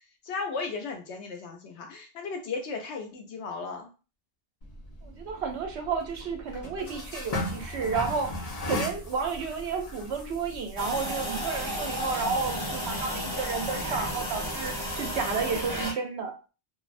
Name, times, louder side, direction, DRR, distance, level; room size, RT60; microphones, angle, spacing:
voice 1, 0.0-3.9, left 4 dB, 90° left, 3 dB, 1.0 m, -36 dB
sound 1, 4.6-15.8, left 1 dB, 45° left, 0.6 m, -39 dB
voice 2, 5.0-16.3, right 5 dB, 80° right, 4 dB, 0.9 m, -32 dB
sound 2, 10.8-15.9, equal, 30° right, 0.5 m, -33 dB
2.6 x 2.0 x 2.4 m, 0.33 s
omnidirectional pair, 1.1 m